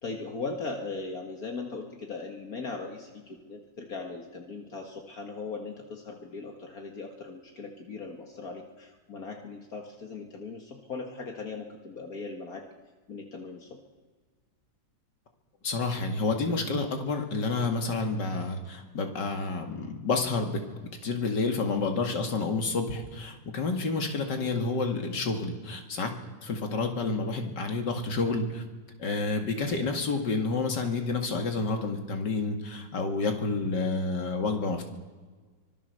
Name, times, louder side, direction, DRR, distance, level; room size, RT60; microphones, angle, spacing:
voice 1, 0.0-12.6 13.1-13.8, left 4 dB, 55° left, 3 dB, 2.2 m, -39 dB
voice 2, 15.6-20.6 21.0-26.1 26.4-28.6 29.0-34.8, left 3 dB, 80° left, 4 dB, 2.8 m, -29 dB
25.5 x 18.5 x 6.7 m, 1.4 s
omnidirectional pair, 1.9 m